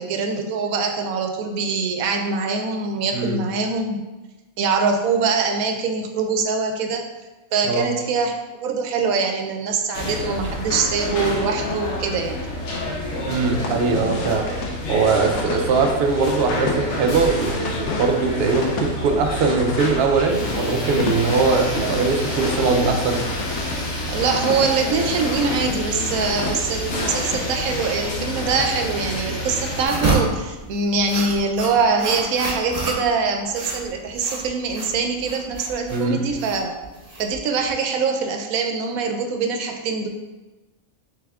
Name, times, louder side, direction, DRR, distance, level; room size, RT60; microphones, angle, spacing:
voice 1, 0.0-4.0 4.6-7.0 7.5-8.3 8.6-12.4 21.8-21.9 24.1-36.7 37.2-40.1, right 4 dB, 85° right, 4 dB, 1.0 m, -23 dB
sound 1, 9.9-29.9, left 1 dB, 60° left, 1.0 m, -28 dB
voice 2, 13.3-14.4 14.9-23.2 35.9-36.2, right 4 dB, 60° right, 3 dB, 0.6 m, -21 dB
sound 2, 13.5-29.2, left 3 dB, 85° left, 1.1 m, -32 dB
sound 3, 29.8-37.7, right 3 dB, 35° right, 0.9 m, -28 dB
3.4 x 3.4 x 3.4 m, 1.1 s
omnidirectional pair, 1.5 m